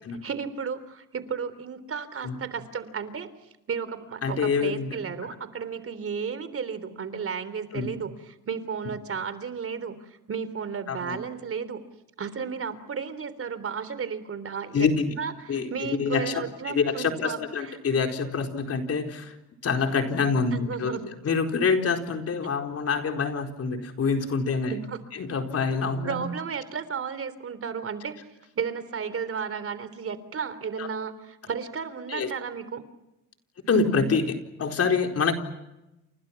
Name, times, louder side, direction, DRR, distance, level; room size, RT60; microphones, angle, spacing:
voice 1, 0.2-3.3 3.7-8.1 8.5-11.8 12.2-14.9 15.2-17.8 20.5-21.1 24.7-25.0 26.0-28.1 28.6-32.8, right 6 dB, 50° right, 13 dB, 3.5 m, -33 dB
voice 2, 4.2-5.0 7.7-8.0 10.9-11.2 14.7-15.1 15.5-19.3 19.6-21.0 21.2-24.7 25.1-26.3 30.8-30.9 32.1-32.3 33.7-35.3, left 5 dB, 50° left, 4 dB, 4.4 m, -26 dB
29.5 x 28.5 x 5.9 m, 0.93 s
cardioid pair, 90°, 30 cm